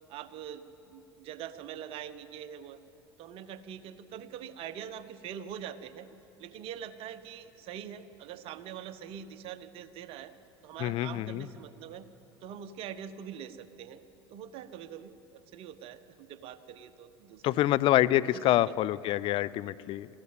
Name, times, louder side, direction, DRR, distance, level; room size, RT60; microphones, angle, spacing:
voice 1, 0.1-2.8 3.2-6.1 6.4-10.3 10.6-12.1 12.4-14.0 14.3-17.6 18.3-18.4, right 9 dB, 50° right, 13 dB, 1.0 m, -43 dB
voice 2, 10.8-11.5 17.4-20.1, left 14 dB, 45° left, 16 dB, 0.6 m, -26 dB
21.5 x 15.0 x 9.2 m, 3.0 s
figure-of-eight pair, 70°, 13 cm